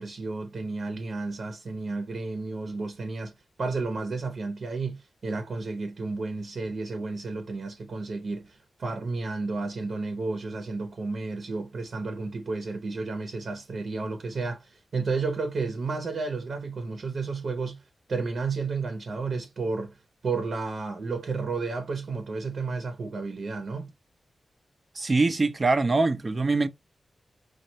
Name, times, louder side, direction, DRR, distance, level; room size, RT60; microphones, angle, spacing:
voice 1, 0.0-3.3 3.6-17.8 18.1-20.0 20.2-23.9, right 3 dB, 65° right, 1.0 m, -32 dB
voice 2, 24.9-26.7, right 3 dB, 35° right, 0.7 m, -23 dB
6.3 x 2.5 x 2.9 m
wide cardioid pair, 105°, 0 cm